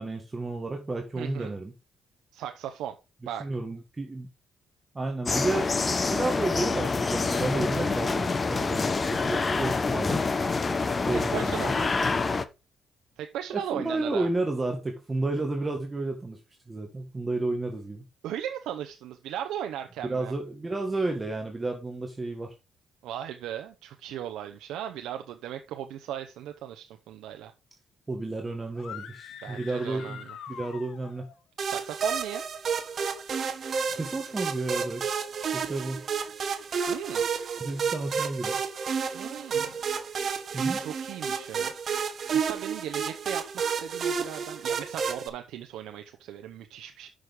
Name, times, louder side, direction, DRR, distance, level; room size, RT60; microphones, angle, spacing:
voice 1, 0.0-1.7 3.4-4.3 4.9-5.9 6.1-10.2 11.0-11.6 13.5-16.4 16.7-18.0 20.0-22.5 28.1-30.2 30.5-31.3 33.9-35.0 35.5-36.0 37.6-38.6 40.5-40.8, right 2 dB, 20° right, 1.7 m, -31 dB
voice 2, 1.2-1.5 2.3-3.0 3.2-3.5 11.1-11.9 13.2-14.3 18.2-20.3 23.0-27.5 29.4-30.4 31.6-32.4 36.9-37.2 39.1-39.8 40.8-41.7 42.0-47.1, right 10 dB, 85° right, 0.8 m, -37 dB
sound 1, 5.3-12.5, left 4 dB, 30° left, 0.8 m, -27 dB
sound 2, 28.7-31.3, left 9 dB, 70° left, 1.1 m, -44 dB
sound 3, 31.6-45.3, right 6 dB, 50° right, 1.4 m, -31 dB
6.4 x 6.3 x 5.1 m
cardioid pair, 90°, 0 cm